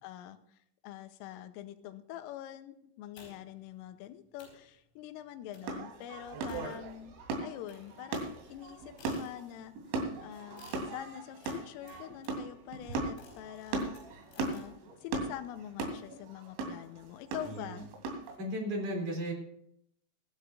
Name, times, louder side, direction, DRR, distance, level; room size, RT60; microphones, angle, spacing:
voice 1, 0.0-8.2 8.5-9.7 10.2-13.9 14.4-17.8, left 12 dB, 90° left, 10 dB, 3.4 m, -45 dB
sound 1, 3.2-3.6 4.1-4.2 4.4-4.7 5.5-5.8 6.5-7.2 7.7-9.7 10.6-14.7, left 3 dB, 70° left, 7.3 m, -57 dB
sound 2, 5.6-18.3, right 3 dB, 75° right, 4.9 m, -38 dB
voice 2, 17.5-17.8 18.4-19.3, equal, 35° right, 1 dB, 3.5 m, -35 dB
21.5 x 12.0 x 2.5 m, 0.72 s
omnidirectional pair, 5.8 m